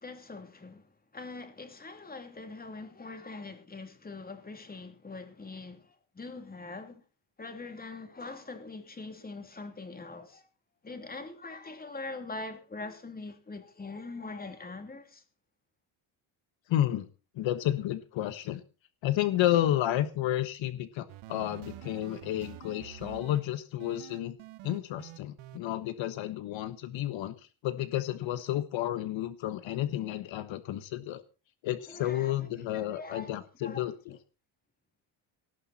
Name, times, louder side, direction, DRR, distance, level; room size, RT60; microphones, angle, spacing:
voice 1, 0.0-0.9 1.1-7.0 7.4-10.4 10.8-15.2 31.9-33.3 33.6-33.8, left 3 dB, 20° left, 3.0 m, -43 dB
voice 2, 16.7-17.1 17.4-18.6 19.0-24.4 24.6-31.2 31.6-34.2, left 13 dB, 65° left, 1.4 m, -31 dB
sound 1, 21.1-23.4 23.8-25.6, right 14 dB, 75° right, 1.5 m, -47 dB
18.0 x 12.5 x 4.3 m
cardioid pair, 120°, 49 cm